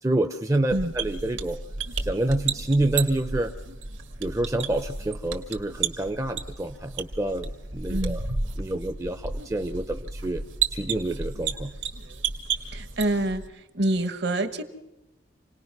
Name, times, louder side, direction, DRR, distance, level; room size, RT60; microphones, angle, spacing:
voice 1, 0.0-1.6 2.0-3.5 4.2-8.2 8.6-10.4 10.7-11.7, right 1 dB, 15° right, 7 dB, 0.7 m, -27 dB
sound 1, 0.7-13.5, right 5 dB, 70° right, 1.9 m, -33 dB
voice 2, 12.6-14.6, right 1 dB, 55° right, 11 dB, 1.4 m, -27 dB
28.0 x 19.0 x 6.0 m, 0.99 s
head